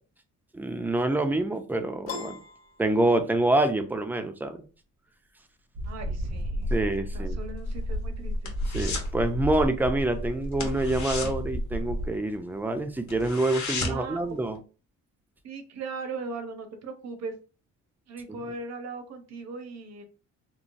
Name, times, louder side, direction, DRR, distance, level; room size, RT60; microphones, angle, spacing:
voice 1, 0.5-2.4 2.8-4.6 6.7-7.4 8.7-14.6, right 2 dB, 5° right, 7 dB, 0.4 m, -26 dB
Piano, 2.1-3.6, left 4 dB, 45° left, 1.0 m, -40 dB
sound 1, 5.7-12.2, equal, 85° right, 1.0 m, -32 dB
voice 2, 5.9-8.5 13.9-14.3 15.4-17.3 18.1-20.0, right 3 dB, 60° right, 7 dB, 0.7 m, -39 dB
sound 2, 7.6-9.2 9.4-9.7 10.0-10.2 10.5-12.4 12.7-12.8 13.1-14.2 14.5-14.6, left 4 dB, 70° left, 0.9 m, -34 dB
3.1 x 2.1 x 2.5 m, 0.35 s
cardioid pair, 90°, 30 cm